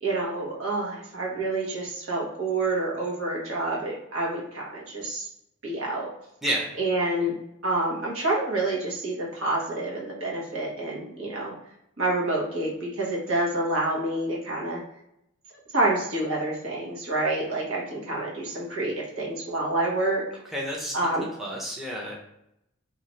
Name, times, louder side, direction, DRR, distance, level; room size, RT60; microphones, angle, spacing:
voice 1, 0.0-5.3 5.6-6.1 6.8-7.3 7.6-11.5 12.0-14.8 15.7-20.3 20.9-21.3, right 2 dB, 70° right, -3 dB, 1.2 m, -28 dB
voice 2, 20.5-20.9 21.4-22.1, equal, ahead, -2 dB, 0.6 m, -29 dB
3.7 x 2.4 x 3.0 m, 0.80 s
head